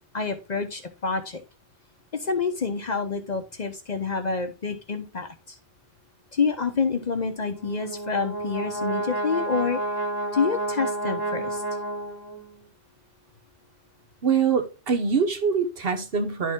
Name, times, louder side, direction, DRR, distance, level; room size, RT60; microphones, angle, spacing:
voice 1, 0.1-1.4 2.1-5.6 6.3-9.8 10.3-11.6, left 5 dB, 45° left, 0.8 m, -27 dB
Brass instrument, 7.5-12.6, right 1 dB, 20° right, 2.0 m, -30 dB
voice 2, 14.2-16.5, right 6 dB, 60° right, 1.2 m, -24 dB
10.0 x 4.1 x 3.6 m
omnidirectional pair, 1.1 m